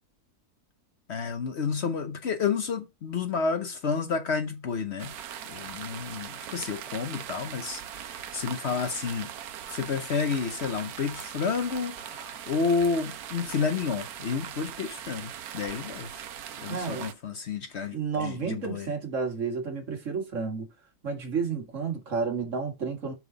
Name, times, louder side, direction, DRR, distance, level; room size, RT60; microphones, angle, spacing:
voice 1, 1.1-5.1 5.5-9.3 9.7-16.1 16.6-18.9, left 5 dB, 55° left, 1.0 m, -30 dB
sound 1, 5.0-17.1, right 9 dB, 85° right, 1.2 m, -40 dB
voice 2, 16.7-17.1 17.9-20.7 21.0-23.1, right 5 dB, 55° right, 2.0 m, -31 dB
6.0 x 5.4 x 3.9 m
omnidirectional pair, 1.5 m